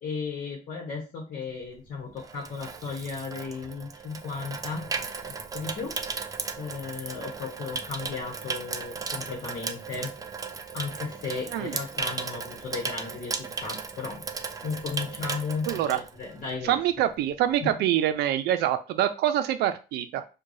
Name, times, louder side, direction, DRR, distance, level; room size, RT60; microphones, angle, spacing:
voice 1, 0.0-6.2 6.6-10.1 10.7-14.2 14.6-17.0 17.6-17.8, left 5 dB, 55° left, -2 dB, 1.0 m, -35 dB
Water tap faucet / Sink (filling or washing), 1.6-16.7 17.0-17.3, right 5 dB, 20° right, 0.3 m, -36 dB
voice 2, 15.7-16.0 16.6-20.2, right 11 dB, 80° right, 10 dB, 0.5 m, -25 dB
4.6 x 2.3 x 2.6 m, 0.32 s
cardioid pair, 110°, 17 cm